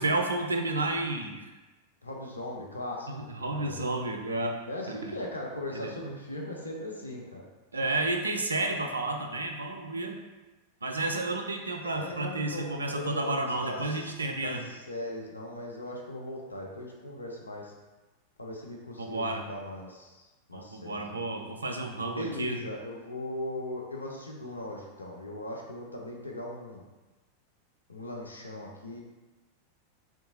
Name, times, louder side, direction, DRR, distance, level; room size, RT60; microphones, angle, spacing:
voice 1, 0.0-1.4 3.1-4.6 4.9-5.1 5.7-5.9 7.7-10.2 10.8-14.6 19.0-19.4 20.5-22.6, right 2 dB, 75° right, 4 dB, 0.3 m, -31 dB
voice 2, 2.0-3.8 4.7-7.5 11.8-17.7 18.4-21.2 22.2-26.9 27.9-29.0, left 1 dB, 80° left, -1 dB, 0.5 m, -39 dB
3.6 x 2.7 x 2.7 m, 1.2 s
figure-of-eight pair, 90°, 0 cm